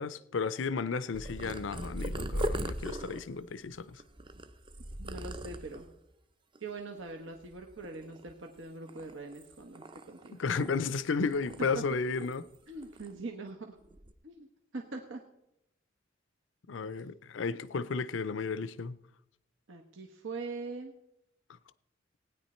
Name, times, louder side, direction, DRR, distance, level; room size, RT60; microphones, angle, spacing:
voice 1, 0.0-4.0 10.3-12.5 16.7-19.0, left 4 dB, 70° left, 0.5 m, -33 dB
Purr, 1.1-6.0 6.6-7.0 7.3-8.5 8.9-11.0 11.3-12.6 12.8-13.1 13.8-14.1, equal, 25° right, 0.6 m, -39 dB
voice 2, 5.0-5.9 6.6-10.4 11.2-11.3 11.7-11.8 12.7-13.8 14.2-14.5 14.7-15.2 16.8-17.0 19.7-20.9, right 3 dB, 80° right, 1.1 m, -42 dB
16.5 x 9.6 x 4.3 m
head